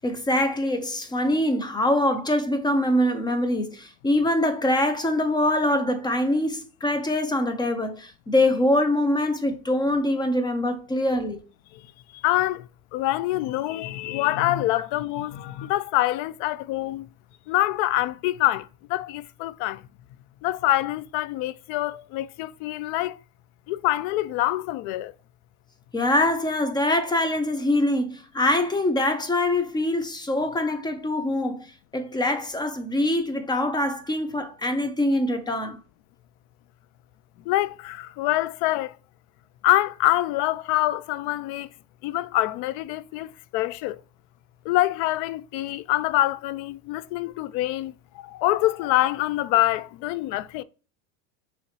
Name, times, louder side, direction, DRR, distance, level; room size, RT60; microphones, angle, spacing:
voice 1, 0.0-11.4 25.9-31.7 31.9-35.8, left 1 dB, 10° left, 0.5 m, -24 dB
voice 2, 12.1-17.1 17.5-19.8 20.4-23.2 23.7-25.1 37.5-39.0 39.6-41.7 42.0-44.0 44.6-50.6, left 16 dB, 65° left, 0.5 m, -25 dB
5.5 x 3.2 x 2.9 m
supercardioid pair, 125°, 38 cm